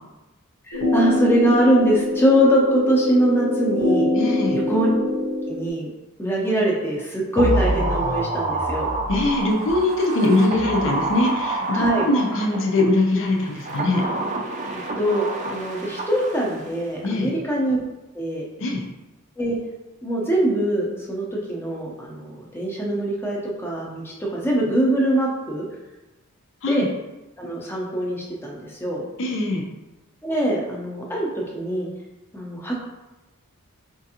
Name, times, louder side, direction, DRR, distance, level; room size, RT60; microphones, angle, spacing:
sound 1, 0.7-5.7, left 1 dB, 85° left, 1.1 m, -24 dB
voice 1, 0.7-4.1 4.5-4.9 5.5-5.9 6.2-8.9 11.7-12.1 15.0-17.8 18.1-18.4 19.4-19.6 20.0-25.7 26.7-26.8 27.4-29.0 30.2-31.9 32.3-32.8, right 1 dB, 10° left, -3 dB, 0.6 m, -22 dB
voice 2, 4.1-4.6 9.1-14.0 17.0-17.3 18.6-18.8 26.6-26.9 29.2-29.6, left 2 dB, 60° left, 0 dB, 0.5 m, -22 dB
sound 2, 7.4-12.8 13.5-16.7 17.0-17.1, right 2 dB, 35° right, 0.4 m, -27 dB
4.5 x 2.5 x 2.8 m, 1.0 s
head